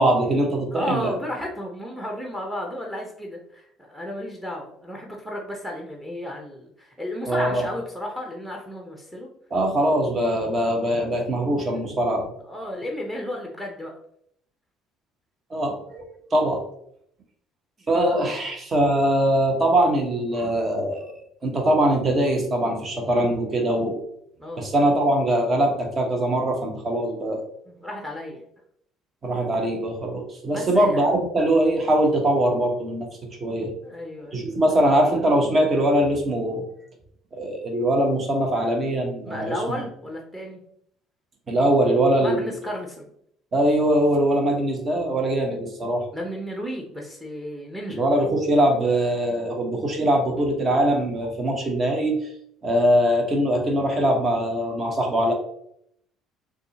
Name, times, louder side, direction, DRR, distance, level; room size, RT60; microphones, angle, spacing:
voice 1, 0.0-1.1 7.3-7.6 9.5-12.2 15.5-16.0 16.3-16.6 17.9-21.1 21.4-24.0 24.6-27.4 29.2-33.1 33.4-33.7 34.3-36.6 37.3-39.6 41.5-42.6 43.5-46.0 47.9-52.2 52.6-55.3, right 1 dB, 35° right, 3 dB, 1.1 m, -22 dB
voice 2, 0.7-9.3 12.4-14.0 24.4-24.7 27.7-28.4 30.5-31.0 33.8-34.6 39.2-40.6 42.2-43.1 46.1-48.0, left 1 dB, 10° right, 0 dB, 0.9 m, -33 dB
6.4 x 2.4 x 2.8 m, 0.71 s
figure-of-eight pair, 55°, 0 cm